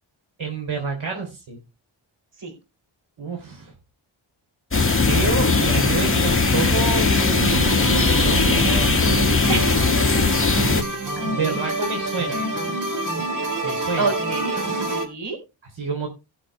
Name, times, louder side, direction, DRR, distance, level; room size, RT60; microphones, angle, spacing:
voice 1, 0.4-1.6 3.2-3.7 5.0-9.5 10.5-10.8 11.2-12.4 13.6-14.1 15.7-16.1, right 4 dB, 75° right, 2 dB, 3.5 m, -28 dB
sound 1, 4.7-10.8, left 4 dB, 25° left, 2.0 m, -19 dB
sound 2, 7.3-15.1, right 2 dB, 40° right, 4.1 m, -27 dB
voice 2, 9.5-9.9 11.2-11.6 14.0-15.4, right 4 dB, 60° right, 5 dB, 4.5 m, -28 dB
18.0 x 6.3 x 3.3 m, 0.27 s
wide cardioid pair, 95°, 47 cm